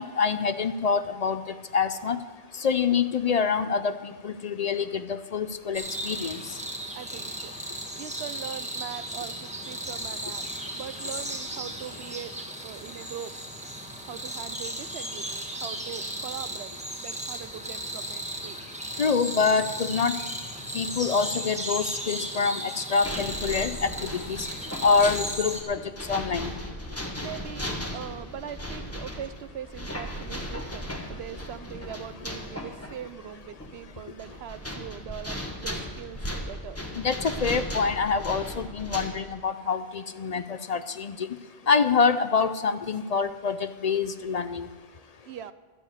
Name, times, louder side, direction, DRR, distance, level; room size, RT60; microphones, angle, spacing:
voice 1, 0.0-1.4 1.7-2.2 2.6-6.4 19.0-20.2 20.7-24.5 24.8-25.8 26.1-26.5 37.0-41.3 41.7-44.7, left 5 dB, 50° left, 11 dB, 0.5 m, -26 dB
sound 1, 5.7-25.6, right 1 dB, 5° right, 1.4 m, -35 dB
voice 2, 6.9-7.5 8.0-10.5 10.7-12.4 12.6-13.3 14.1-16.7 17.0-18.7 27.2-27.7 27.9-36.8 45.3-45.5, right 9 dB, 75° right, 13 dB, 0.8 m, -41 dB
sound 2, 23.0-39.1, equal, 15° left, 1.2 m, -37 dB
12.5 x 7.1 x 8.0 m, 1.3 s
omnidirectional pair, 1.1 m